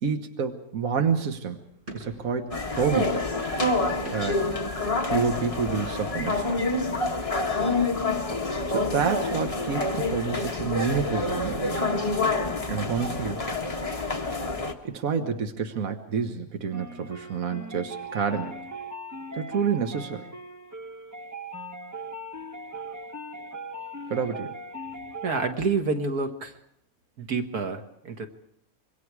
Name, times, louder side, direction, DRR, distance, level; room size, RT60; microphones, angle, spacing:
voice 1, 0.0-1.7 1.9-3.3 4.1-4.5 5.1-6.7 8.7-11.8 12.7-13.4 14.8-18.5 19.3-20.3 24.1-24.6, right 6 dB, 70° right, 5 dB, 1.7 m, -28 dB
sound 1, 1.0-6.2, right 1 dB, 55° right, 7.5 m, -48 dB
sound 2, 2.5-14.7, left 2 dB, 25° left, 1.6 m, -27 dB
sound 3, 16.7-25.5, right 1 dB, 15° right, 0.9 m, -39 dB
voice 2, 25.2-26.5 27.2-28.3, right 4 dB, 90° right, 5 dB, 2.1 m, -28 dB
26.0 x 23.0 x 4.8 m, 0.73 s
omnidirectional pair, 1.5 m